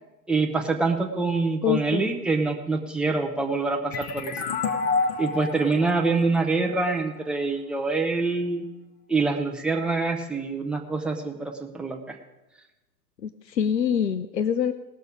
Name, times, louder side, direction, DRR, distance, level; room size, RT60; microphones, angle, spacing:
voice 1, 0.3-4.3 5.2-8.7 9.1-12.2, right 3 dB, ahead, 2 dB, 0.6 m, -25 dB
voice 2, 1.6-2.1 13.2-14.7, left 8 dB, 80° left, 12 dB, 0.8 m, -25 dB
sound 1, 3.9-7.3, left 4 dB, 30° left, 1.0 m, -29 dB
18.5 x 6.6 x 4.8 m, 1.0 s
figure-of-eight pair, 110°, 49 cm